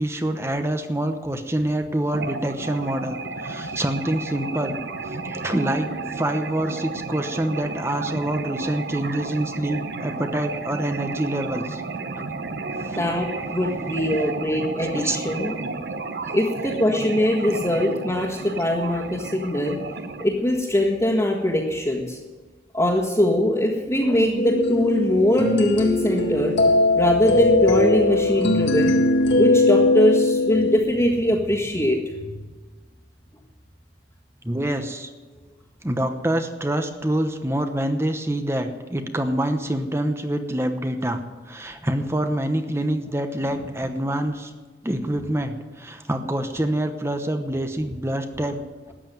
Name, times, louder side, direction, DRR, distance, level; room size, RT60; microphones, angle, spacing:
voice 1, 0.0-4.8 5.0-11.8 12.1-12.2 12.7-13.0 14.1-14.3 14.9-15.2 16.2-16.4 34.4-35.1 35.8-41.2 41.5-44.5 44.8-48.6, right 1 dB, 15° right, 7 dB, 0.9 m, -26 dB
sound 1, 2.1-20.2, right 3 dB, 60° right, 1.0 m, -32 dB
voice 2, 13.0-15.5 16.3-19.8 20.2-22.2 22.7-26.5 27.0-29.0 29.4-32.4, left 1 dB, 20° left, -5 dB, 1.7 m, -22 dB
sound 2, 24.4-30.8, left 2 dB, 70° left, 1.6 m, -20 dB
13.5 x 9.3 x 9.3 m, 1.3 s
head